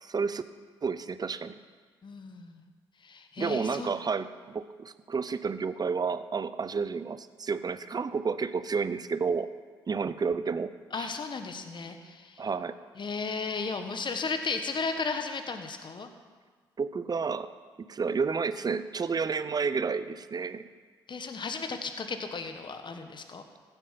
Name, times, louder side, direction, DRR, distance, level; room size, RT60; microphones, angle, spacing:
voice 1, 0.0-0.4 0.8-1.6 3.4-9.5 9.9-11.1 12.4-12.7 16.8-17.5 17.9-20.6, right 5 dB, 35° right, 13 dB, 0.7 m, -31 dB
voice 2, 2.0-2.6 3.0-4.0 10.9-12.4 13.0-16.1 21.1-23.4, left 4 dB, 40° left, 7 dB, 1.5 m, -35 dB
15.0 x 8.1 x 5.8 m, 1.5 s
hypercardioid pair, 50°, 12 cm